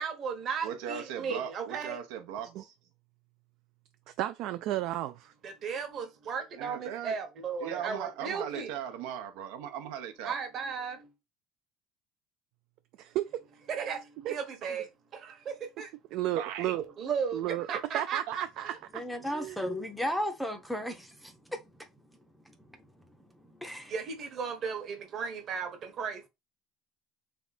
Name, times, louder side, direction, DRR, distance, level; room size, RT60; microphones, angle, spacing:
voice 1, 0.0-2.0 5.4-8.7 10.2-11.1 13.7-14.9 15.1-15.9 17.0-18.8 23.9-26.3, right 6 dB, 35° right, 1.0 m, -35 dB
voice 2, 0.6-2.6 6.6-7.1 7.6-10.3 16.3-16.8 18.0-18.4, right 9 dB, 85° right, 0.9 m, -38 dB
voice 3, 4.1-5.3 13.0-13.4 14.2-14.4 16.1-16.8 17.3-17.7 17.9-19.0 19.3-19.6, right 14 dB, 50° right, 0.3 m, -33 dB
voice 4, 18.9-21.9 22.4-22.6 23.4-23.9, equal, ahead, 0.6 m, -35 dB
3.5 x 3.5 x 4.1 m
cardioid pair, 175°, 0 cm